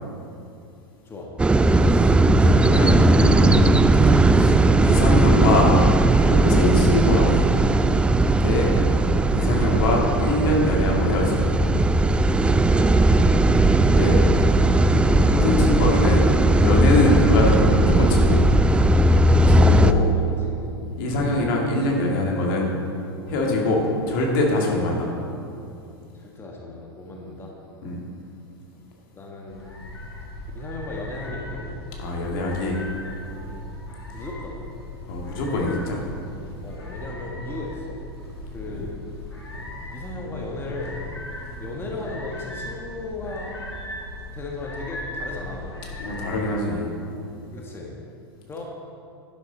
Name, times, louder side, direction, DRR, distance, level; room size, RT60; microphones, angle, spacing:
sound 1, 1.4-19.9, right 2 dB, 10° right, 0.4 m, -17 dB
voice 1, 2.4-3.8 4.3-5.8 6.1-7.5 8.4-8.7 9.3-11.4 13.9-14.5 15.0-16.2 16.6-18.4 19.5-20.0 21.0-22.7 23.3-25.1 27.8-28.0 32.0-32.8 35.1-36.0 38.7-38.9 46.0-46.9, left 2 dB, 60° left, -1 dB, 2.3 m, -23 dB
voice 2, 12.9-13.6 14.2-14.5 15.4-15.6 19.7-20.1 20.3-20.7 23.3-23.5 26.1-27.5 29.1-29.7 30.5-31.8 33.4-33.7 34.1-34.6 36.6-38.0 38.5-39.0 39.9-41.1 41.6-43.6 44.3-45.7 47.5-47.9 48.5-48.6, left 2 dB, 20° left, -1 dB, 1.6 m, -36 dB
sound 2, 29.5-46.4, left 1 dB, 90° left, 2.2 m, -37 dB
11.0 x 11.0 x 4.1 m, 2.6 s
figure-of-eight pair, 90°, 13 cm